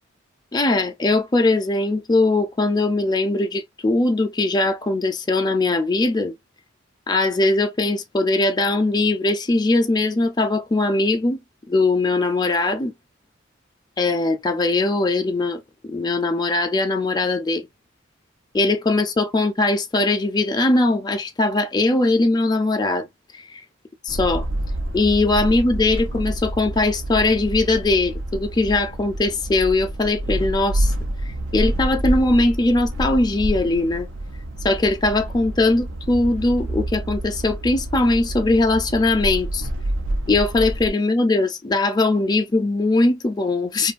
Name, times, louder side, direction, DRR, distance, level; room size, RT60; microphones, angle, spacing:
voice 1, 0.5-6.3 7.1-11.4 11.7-12.9 14.0-17.7 18.5-23.1 23.3-23.6 24.1-24.5 24.9-30.9 31.5-34.1 34.6-39.7 40.3-43.9, left 2 dB, 20° left, 0.4 m, -20 dB
sound 1, 24.1-40.9, right 1 dB, 85° right, 0.6 m, -28 dB
2.6 x 2.3 x 2.4 m
head